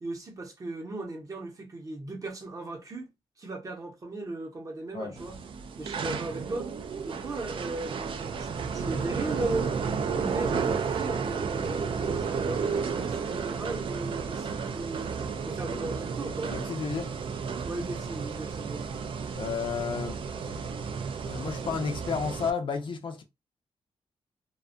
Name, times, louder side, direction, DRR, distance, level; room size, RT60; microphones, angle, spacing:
voice 1, 0.0-3.1 3.4-5.4 5.8-6.7 7.0-9.7 10.0-16.5 17.6-18.8, right 2 dB, 30° right, 0.8 m, -37 dB
sound 1, 5.2-22.5, right 6 dB, 55° right, 0.4 m, -32 dB
voice 2, 16.5-17.1 19.3-20.2 21.2-23.2, left 5 dB, 50° left, 0.5 m, -32 dB
2.5 x 2.2 x 2.5 m
wide cardioid pair, 155°, 11 cm